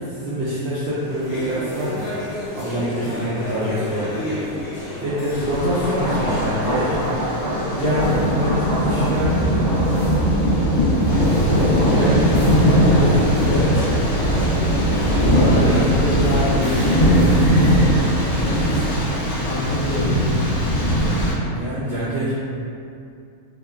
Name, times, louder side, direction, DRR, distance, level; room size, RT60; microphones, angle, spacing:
voice 1, 0.0-2.1 2.6-4.4 5.0-7.0 7.7-9.7 11.5-13.2 15.3-15.9 21.5-22.3, right 1 dB, 70° right, -11 dB, 0.6 m, -25 dB
sound 1, 0.9-19.3, left 1 dB, 60° left, 0.8 m, -33 dB
Thunder, 5.3-21.3, equal, 45° left, 0.4 m, -19 dB
voice 2, 7.4-8.0 13.5-13.9 14.4-14.5 15.2-15.5 16.0-17.6 19.4-20.4, left 1 dB, 80° left, -5 dB, 1.1 m, -26 dB
sound 2, 16.7-18.5, left 1 dB, 25° left, 1.0 m, -40 dB
3.1 x 2.1 x 2.3 m, 2.5 s
omnidirectional pair, 1.6 m